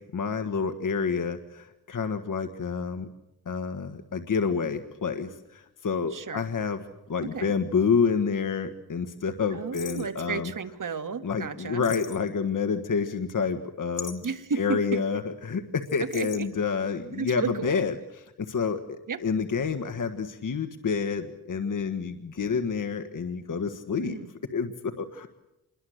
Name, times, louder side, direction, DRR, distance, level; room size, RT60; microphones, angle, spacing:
voice 1, 0.1-3.1 3.4-6.8 7.1-10.5 11.2-14.2 14.6-24.2 24.5-25.3, left 5 dB, 55° left, 7 dB, 1.6 m, -28 dB
sound 1, 4.1-4.2 5.1-7.8 8.1-8.2 9.7-10.2 11.8-12.6 13.9-14.4 15.8-16.5, left 8 dB, 75° left, 2.9 m, -42 dB
voice 2, 6.1-6.4 7.2-7.5 9.5-11.8 14.2-15.0 16.1-16.5 17.1-17.9 19.1-19.2 24.0-24.3, right 5 dB, 55° right, 8 dB, 2.2 m, -33 dB
27.5 x 22.0 x 8.0 m, 0.92 s
wide cardioid pair, 85°, 37 cm